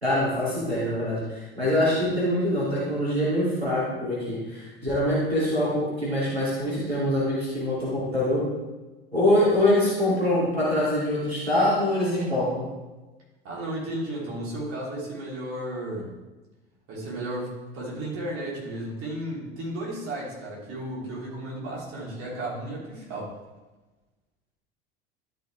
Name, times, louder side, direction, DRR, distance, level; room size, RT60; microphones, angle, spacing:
voice 1, 0.0-8.5 9.1-12.7, left 1 dB, 90° right, -8 dB, 2.8 m, -24 dB
voice 2, 13.4-16.1 16.9-23.3, right 1 dB, 45° right, -5 dB, 3.4 m, -34 dB
12.5 x 6.3 x 3.4 m, 1.1 s
figure-of-eight pair, 70°, 31 cm